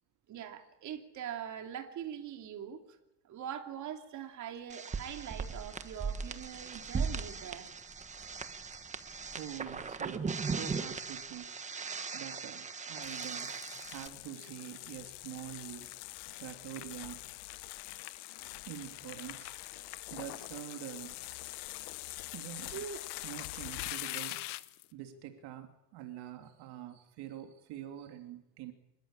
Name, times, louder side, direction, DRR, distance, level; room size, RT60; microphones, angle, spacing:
voice 1, 0.3-2.8 3.2-7.7 18.4-18.6 22.7-23.0, right 9 dB, 40° right, 3.1 m, -42 dB
sound 1, 4.7-14.1, right 5 dB, 15° right, 1.3 m, -38 dB
voice 2, 8.9-11.6 12.1-16.0 16.4-17.3 17.5-17.7 18.6-21.2 22.3-22.8 23.2-24.5 24.9-28.7, right 12 dB, 55° right, 2.9 m, -46 dB
sound 2, 13.0-24.9, left 19 dB, 60° left, 1.3 m, -44 dB
26.0 x 23.0 x 8.9 m
cardioid pair, 165°, 46 cm